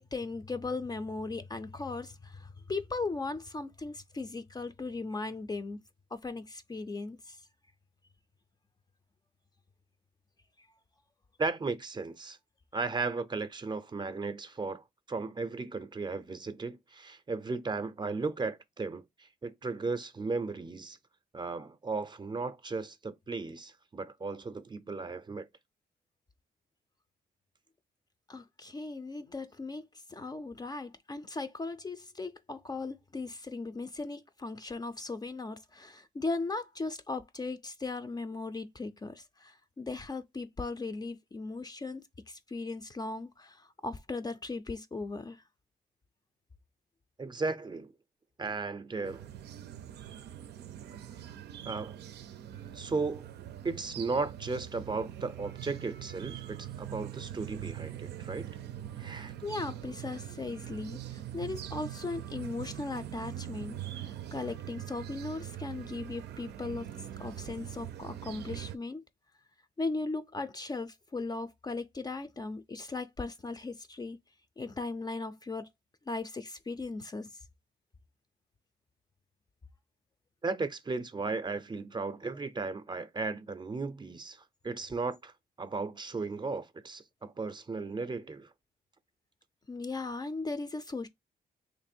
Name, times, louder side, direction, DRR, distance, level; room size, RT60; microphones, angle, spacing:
voice 1, 0.0-5.8 6.1-7.4 28.3-45.4 59.4-66.9 67.2-69.0 69.8-74.2 74.6-75.7 76.1-77.3 89.7-91.1, left 3 dB, 25° left, 0.4 m, -38 dB
voice 2, 11.4-12.4 12.7-21.0 21.3-25.5 47.2-47.9 48.4-49.3 51.7-52.0 52.7-53.3 53.6-58.5 59.0-59.3 80.4-85.3 85.6-88.5, right 4 dB, 25° right, 0.5 m, -35 dB
sound 1, 49.0-68.8, right 11 dB, 90° right, 0.4 m, -43 dB
3.1 x 2.5 x 4.3 m
cardioid pair, 90°, 17 cm